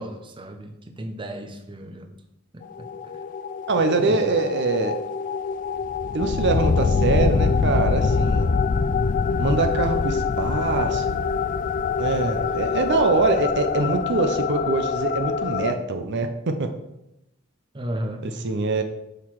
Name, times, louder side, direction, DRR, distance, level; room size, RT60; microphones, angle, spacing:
voice 1, 0.0-2.1 2.5-3.2 4.0-4.3 12.2-12.5 17.7-18.2, equal, 25° right, 5 dB, 0.7 m, -34 dB
sound 1, 2.6-15.7, left 5 dB, 40° left, 0.3 m, -24 dB
voice 2, 3.7-5.0 6.1-8.5 9.4-11.2 12.0-16.7 18.2-18.8, right 3 dB, 60° right, 6 dB, 0.7 m, -24 dB
6.5 x 5.8 x 4.7 m, 0.87 s
head